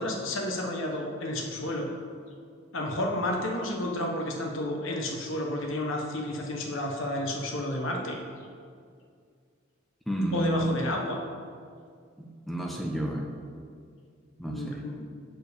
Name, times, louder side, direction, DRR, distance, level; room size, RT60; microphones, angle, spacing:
voice 1, 0.0-1.9 2.7-8.2 10.3-11.2 14.5-15.1, left 1 dB, 70° left, 1 dB, 1.0 m, -31 dB
voice 2, 10.1-10.8 12.2-13.3 14.4-14.8, right 1 dB, ahead, 0 dB, 0.6 m, -30 dB
6.4 x 4.7 x 6.7 m, 2.2 s
head